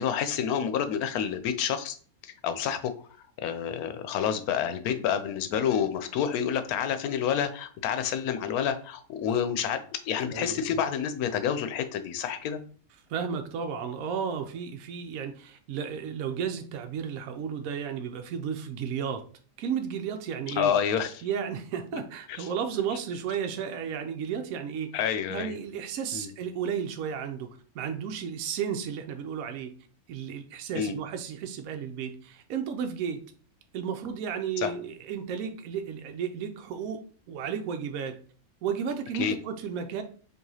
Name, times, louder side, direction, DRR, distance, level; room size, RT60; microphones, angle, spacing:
voice 1, 0.0-2.0 2.2-2.9 3.4-9.8 10.0-12.6 20.6-21.2 22.3-22.5 24.9-25.6 26.1-26.3 30.7-30.9 34.6-34.7 39.1-39.4, left 8 dB, 85° left, 9 dB, 1.1 m, -28 dB
voice 2, 10.3-10.6 13.1-19.2 19.6-20.7 21.2-25.0 25.3-29.7 30.1-33.2 33.7-37.0 37.3-38.2 38.6-40.0, right 7 dB, 75° right, 6 dB, 1.0 m, -33 dB
4.7 x 2.8 x 2.7 m, 0.43 s
omnidirectional pair, 1.5 m